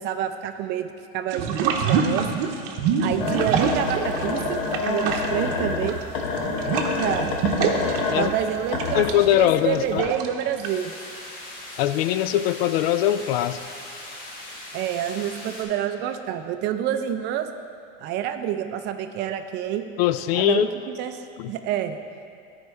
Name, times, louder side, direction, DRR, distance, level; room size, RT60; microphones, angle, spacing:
voice 1, 0.0-2.3 3.0-6.0 7.0-7.3 8.1-10.9 14.7-17.5 18.0-19.8 20.3-21.2 21.5-22.0, right 10 dB, 35° right, 8 dB, 0.5 m, -28 dB
sound 1, 1.3-4.4 4.7-10.7, right 6 dB, 65° right, 0.9 m, -26 dB
sound 2, 3.2-9.5 9.9-10.0, left 4 dB, 60° left, 1.1 m, -27 dB
voice 2, 9.0-10.1 11.8-13.6 20.0-20.7 21.4-21.5, left 12 dB, 85° left, 12 dB, 0.5 m, -21 dB
sound 3, 10.6-15.6, left 1 dB, 30° left, 1.8 m, -40 dB
13.5 x 4.5 x 3.5 m, 2.5 s
supercardioid pair, 145°, 29 cm